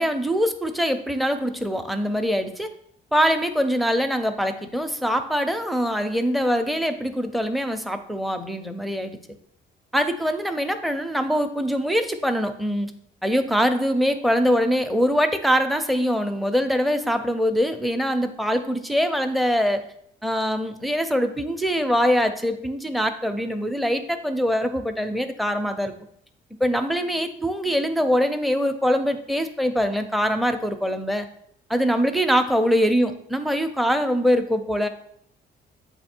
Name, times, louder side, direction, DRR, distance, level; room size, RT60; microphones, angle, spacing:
voice 1, 0.0-2.7 3.1-9.2 9.9-12.9 13.2-19.8 20.2-25.9 26.6-31.3 31.7-34.9, equal, ahead, 8 dB, 0.5 m, -23 dB
7.9 x 2.8 x 4.4 m, 0.70 s
cardioid pair, 90°, 20 cm